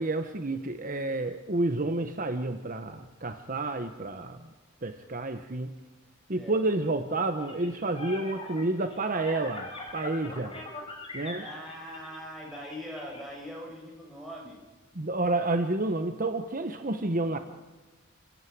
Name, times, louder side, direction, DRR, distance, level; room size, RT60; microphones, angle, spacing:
voice 1, 0.0-4.5 4.8-5.8 6.3-10.5 11.1-11.5 14.9-17.4, right 2 dB, 40° right, 7 dB, 1.1 m, -30 dB
sound 1, 7.4-13.2, left 2 dB, 25° left, 5.3 m, -42 dB
voice 2, 11.4-14.6, equal, ahead, -2 dB, 7.2 m, -41 dB
27.5 x 15.5 x 9.4 m, 1.2 s
head